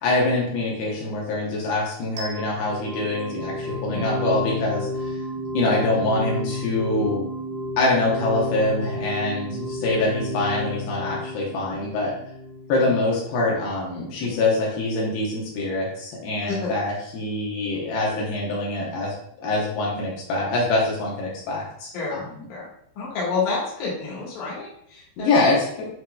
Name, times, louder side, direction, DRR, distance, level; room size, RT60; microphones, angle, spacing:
voice 1, 0.0-5.1 5.5-7.2 7.8-12.1 12.7-19.1 19.4-22.5 25.2-25.9, left 2 dB, 80° left, -4 dB, 2.8 m, -24 dB
sound 1, 2.2-13.1, left 1 dB, 85° right, 2.9 m, -32 dB
voice 2, 21.9-22.7 23.0-25.3, left 4 dB, 60° left, -5 dB, 2.6 m, -29 dB
7.8 x 2.9 x 2.2 m, 0.70 s
omnidirectional pair, 4.3 m